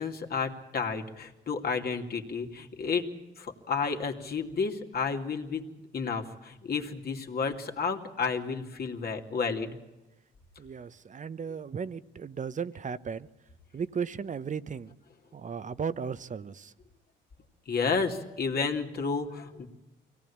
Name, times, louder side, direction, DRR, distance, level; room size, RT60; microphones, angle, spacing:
voice 1, 0.0-3.1 3.4-5.7 5.9-9.8 17.7-19.7, left 5 dB, 50° left, 2.8 m, -31 dB
voice 2, 10.6-13.3 13.7-14.9 15.3-16.7, right 6 dB, 40° right, 1.0 m, -35 dB
24.0 x 18.0 x 8.7 m
cardioid pair, 90°, 20 cm